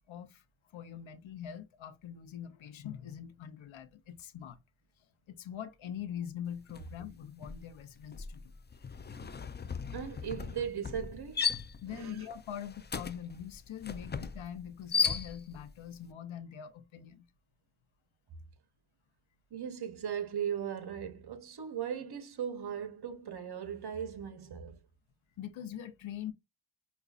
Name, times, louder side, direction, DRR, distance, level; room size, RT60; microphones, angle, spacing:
voice 1, 0.1-0.4 0.7-4.6 5.3-8.5 11.8-17.3 25.4-26.3, left 9 dB, 75° left, 0.7 m, -43 dB
sound 1, 6.7-7.0 7.3-15.7, left 6 dB, 25° left, 0.3 m, -36 dB
voice 2, 9.9-11.5 11.9-12.3 19.5-24.8, right 8 dB, 55° right, 0.8 m, -38 dB
5.0 x 2.3 x 2.3 m
cardioid pair, 55°, 48 cm